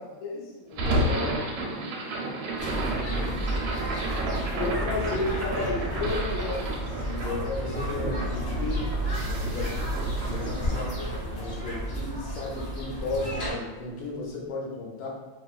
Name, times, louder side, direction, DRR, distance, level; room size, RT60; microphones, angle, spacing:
voice 1, 0.0-1.3 4.3-8.9 9.3-9.7 10.3-11.1 11.3-15.1, left 3 dB, 75° left, -3 dB, 1.3 m, -33 dB
sound 1, 0.7-12.9, right 1 dB, 80° right, 1.3 m, -32 dB
voice 2, 0.8-3.9 9.2-9.8, right 1 dB, 60° right, -8 dB, 0.5 m, -44 dB
sound 2, 2.6-13.5, right 1 dB, 55° left, 0.7 m, -32 dB
3.5 x 2.2 x 2.3 m, 1.2 s
omnidirectional pair, 2.2 m